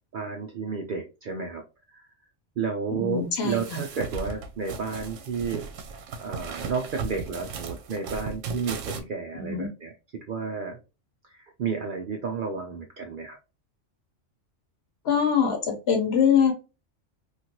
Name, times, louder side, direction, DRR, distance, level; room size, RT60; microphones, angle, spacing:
voice 1, 0.1-2.1 2.6-5.7 6.2-10.8 11.2-13.4, right 5 dB, 60° right, 0.5 m, -32 dB
voice 2, 2.9-3.8 9.3-9.7 15.0-16.5, left 7 dB, 60° left, 1.1 m, -23 dB
sound 1, 3.3-9.0, right 5 dB, 85° right, 1.0 m, -36 dB
3.1 x 2.5 x 2.8 m
omnidirectional pair, 1.3 m